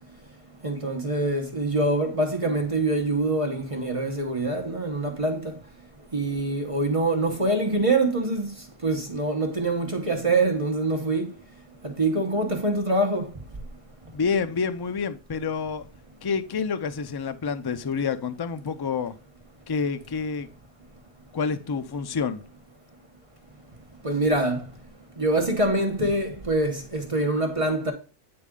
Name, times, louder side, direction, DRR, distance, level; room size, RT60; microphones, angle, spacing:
voice 1, 0.6-5.5 6.1-8.5 8.8-11.3 11.8-13.3 24.0-24.7 25.2-27.9, right 2 dB, 35° right, 1.0 m, -25 dB
voice 2, 14.1-15.8 16.2-19.1 19.7-20.5 21.3-22.4, left 5 dB, 40° left, 0.3 m, -28 dB
8.7 x 4.1 x 3.6 m
omnidirectional pair, 1.1 m